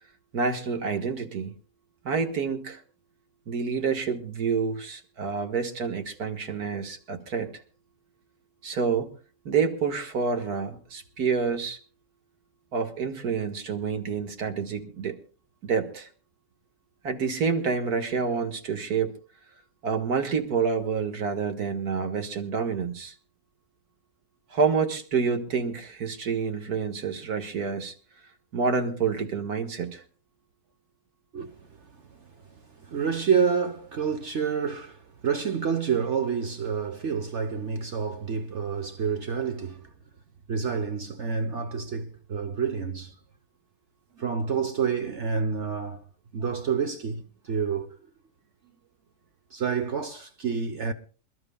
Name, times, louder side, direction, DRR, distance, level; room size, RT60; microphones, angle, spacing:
voice 1, 0.3-1.5 2.0-2.8 3.5-7.5 8.6-9.1 9.5-11.8 12.7-15.2 15.6-16.1 17.0-19.1 19.8-23.1 24.5-27.9 28.5-30.0, right 5 dB, 70° right, 2.1 m, -28 dB
voice 2, 31.3-32.3 32.8-39.9 40.5-43.1 44.2-46.0 46.3-48.0 49.5-50.9, right 6 dB, 50° right, 1.2 m, -28 dB
27.5 x 12.5 x 2.3 m
omnidirectional pair, 1.7 m